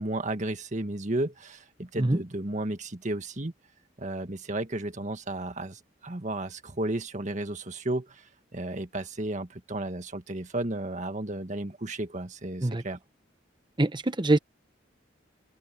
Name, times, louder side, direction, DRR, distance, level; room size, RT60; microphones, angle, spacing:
voice 1, 0.0-3.5 4.0-8.3 8.5-13.0, right 1 dB, 40° right, 1.8 m, -33 dB
voice 2, 13.8-14.4, right 2 dB, 25° right, 0.9 m, -24 dB
open air
head